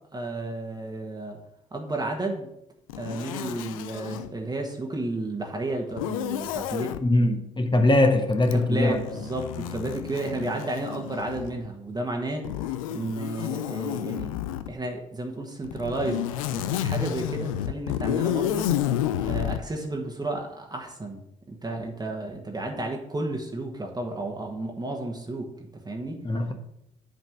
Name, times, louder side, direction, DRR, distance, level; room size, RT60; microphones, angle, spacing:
voice 1, 0.1-1.4 1.7-2.5 3.0-7.0 8.7-12.5 12.9-14.3 14.7-18.7 19.2-21.2 21.5-26.2, right 2 dB, 25° right, 1.4 m, -32 dB
Zipper (clothing), 2.9-4.3 5.9-7.0 8.4-11.7 12.4-14.7 15.6-19.6, left 12 dB, 80° left, 0.4 m, -30 dB
voice 2, 7.0-9.0 26.2-26.5, left 2 dB, 25° left, 1.2 m, -21 dB
8.0 x 4.2 x 6.4 m
figure-of-eight pair, 45°, 17 cm